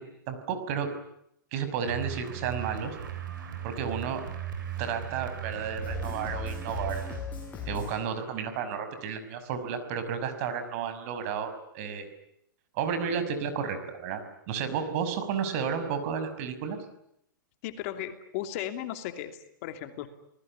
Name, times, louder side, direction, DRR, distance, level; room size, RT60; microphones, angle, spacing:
voice 1, 0.3-0.9 1.5-3.0 3.6-4.2 4.8-7.0 7.7-12.1 12.8-14.2 14.5-16.8, right 7 dB, 45° right, 9 dB, 5.7 m, -32 dB
sound 1, 1.8-7.2, right 9 dB, 75° right, 7.4 m, -37 dB
sound 2, 5.8-8.5, left 6 dB, 15° left, 7.3 m, -39 dB
voice 2, 17.6-20.1, left 12 dB, 45° left, 8 dB, 2.8 m, -36 dB
29.5 x 19.5 x 9.9 m, 0.76 s
hypercardioid pair, 145°, 11 cm